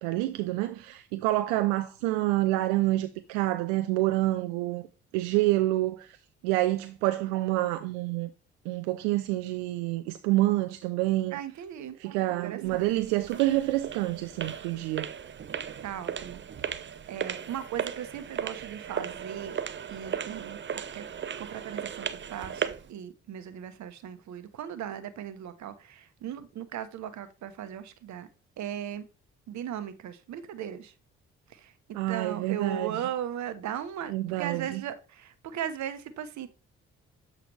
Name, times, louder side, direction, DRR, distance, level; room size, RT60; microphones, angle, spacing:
voice 1, 0.0-4.9 5.1-6.2 6.4-8.3 8.7-11.4 12.0-15.1 31.9-32.9 34.1-34.8, right 17 dB, 85° right, 0.5 m, -27 dB
voice 2, 11.3-12.0 12.4-13.0 15.8-16.8 17.1-19.6 19.9-21.1 21.4-28.3 28.6-29.1 29.5-30.9 31.5-36.5, right 9 dB, 65° right, 1.0 m, -37 dB
sound 1, 12.6-22.9, right 8 dB, 35° right, 0.7 m, -36 dB
7.7 x 4.9 x 3.3 m
hypercardioid pair, 50°, 31 cm